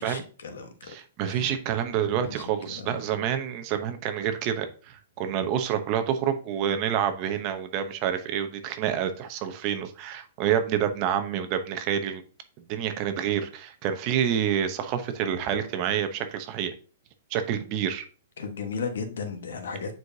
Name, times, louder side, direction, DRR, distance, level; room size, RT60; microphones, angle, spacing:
voice 1, 0.0-0.9 1.2-1.5 2.0-3.2 18.4-19.9, left 5 dB, 85° left, 1.4 m, -36 dB
voice 2, 0.9-12.2 12.7-16.7 17.3-18.0, right 9 dB, 30° right, 0.8 m, -28 dB
9.0 x 4.8 x 2.8 m
hypercardioid pair, 165°, 0 cm